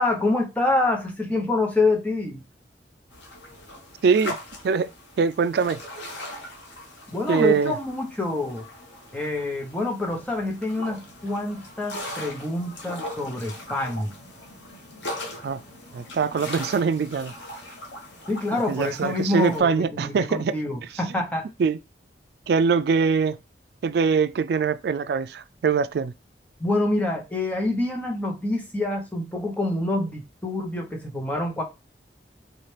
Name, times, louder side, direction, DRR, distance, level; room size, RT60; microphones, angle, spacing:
voice 1, 0.0-2.4 7.1-8.6 9.1-14.1 18.3-21.5 26.6-31.6, left 2 dB, 10° left, 0.8 m, -26 dB
sound 1, 3.1-19.6, left 1 dB, 80° left, 1.2 m, -40 dB
voice 2, 4.0-4.4 4.6-4.9 5.2-5.8 7.3-7.8 15.4-15.6 15.9-17.3 18.7-20.6 21.6-21.8 22.5-23.4 23.8-26.1, right 5 dB, 60° right, 0.3 m, -22 dB
4.2 x 2.4 x 3.2 m
head